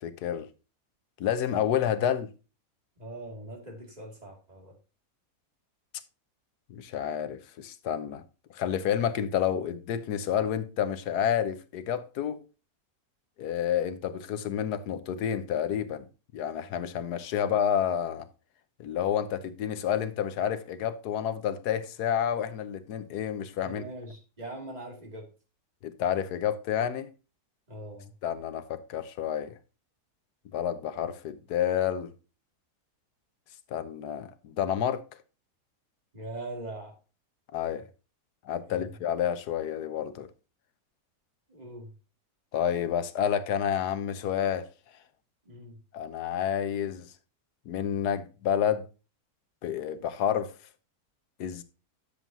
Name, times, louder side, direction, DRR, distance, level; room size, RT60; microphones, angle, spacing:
voice 1, 0.0-0.5 1.2-2.3 6.7-8.2 8.5-12.4 13.4-16.0 16.3-18.2 18.8-23.8 25.8-27.1 28.2-29.6 30.5-32.1 33.7-35.0 37.5-37.8 38.4-40.3 42.5-44.7 45.9-47.1 47.7-48.9 49.6-50.5 51.4-51.6, left 9 dB, 85° left, 1.4 m, -29 dB
voice 2, 3.0-4.8 23.6-25.3 27.7-28.1 36.1-37.0 38.7-38.9 41.5-41.9 45.4-45.8, right 1 dB, 25° right, 2.5 m, -42 dB
10.0 x 7.4 x 2.7 m
omnidirectional pair, 1.7 m